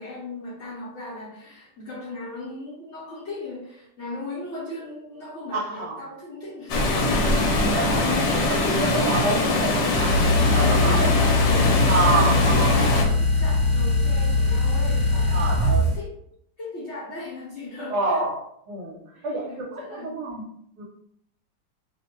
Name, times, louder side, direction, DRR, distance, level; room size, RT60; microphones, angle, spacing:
voice 1, 0.0-7.3 7.7-8.3 10.8-13.1 13.4-16.1 16.6-18.2 19.2-20.1, left 2 dB, 55° left, -7 dB, 0.9 m, -37 dB
voice 2, 5.5-6.0 7.7-8.0 8.3-10.1 10.5-11.1 11.9-12.7 15.3-15.9 17.9-18.4 18.7-20.4 20.8-20.9, right 2 dB, 70° right, -2 dB, 1.2 m, -27 dB
Water, 6.7-13.0, left 2 dB, 75° left, 1.2 m, -22 dB
sound 1, 9.9-16.0, left 2 dB, 25° right, 1.1 m, -21 dB
2.9 x 2.1 x 2.9 m, 0.71 s
omnidirectional pair, 1.9 m